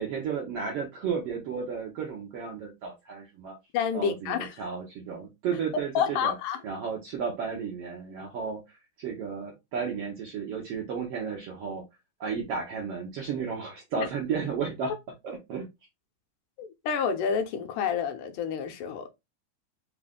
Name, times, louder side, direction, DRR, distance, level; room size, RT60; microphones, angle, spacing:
voice 1, 0.0-3.6 3.9-6.3 6.6-11.8 12.2-14.9 15.2-15.7, right 6 dB, 75° right, 1.4 m, -33 dB
voice 2, 3.7-4.6 6.0-6.6 14.0-14.1 16.6-19.1, left 7 dB, 85° left, 2.2 m, -29 dB
5.0 x 2.5 x 3.5 m
omnidirectional pair, 3.7 m